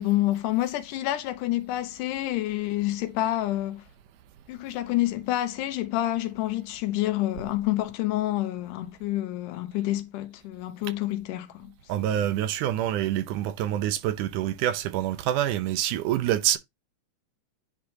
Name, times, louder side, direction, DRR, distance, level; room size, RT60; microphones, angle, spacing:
voice 1, 0.0-3.8 4.5-11.7 12.0-12.3, left 15 dB, 90° left, 2.3 m, -28 dB
voice 2, 11.9-16.6, right 12 dB, 85° right, 2.2 m, -26 dB
9.8 x 3.5 x 2.7 m
omnidirectional pair, 3.6 m